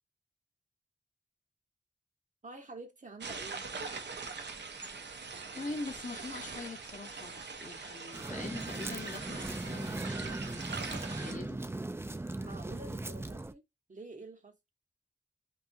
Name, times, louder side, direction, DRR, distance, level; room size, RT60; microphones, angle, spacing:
voice 1, 2.4-3.6 12.4-13.6 13.9-14.6, right 3 dB, 45° right, 0.9 m, -48 dB
sound 1, 3.2-11.3, right 4 dB, 80° right, 0.5 m, -42 dB
voice 2, 5.5-11.6 12.6-13.0, left 3 dB, 50° left, 0.8 m, -44 dB
sound 2, 8.1-13.5, right 2 dB, 15° right, 0.3 m, -39 dB
2.7 x 2.4 x 2.5 m
cardioid pair, 45°, 18 cm